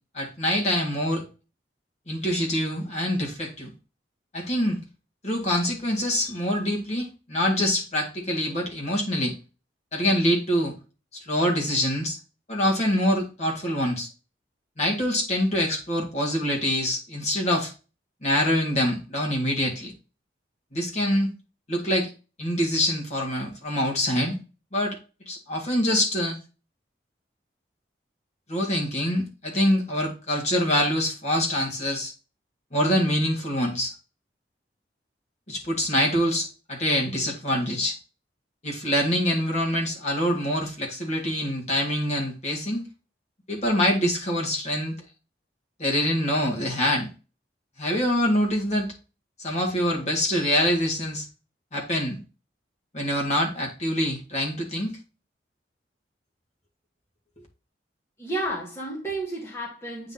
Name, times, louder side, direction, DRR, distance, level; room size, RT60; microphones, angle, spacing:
voice 1, 0.1-1.2 2.1-3.7 4.3-4.8 5.2-9.4 9.9-10.7 11.1-12.2 12.5-14.1 14.8-17.7 18.2-19.9 20.7-21.3 21.7-22.1 22.4-24.4 24.7-25.0 25.3-26.4 28.5-32.1 32.7-33.9 35.5-38.0 38.6-42.8 43.5-45.0 45.8-47.1 47.8-48.9 49.4-51.2 51.7-52.2 52.9-54.9, equal, 40° left, 2.0 m, -25 dB
voice 2, 58.2-60.1, right 1 dB, 15° left, 1.5 m, -31 dB
8.7 x 4.0 x 2.9 m
head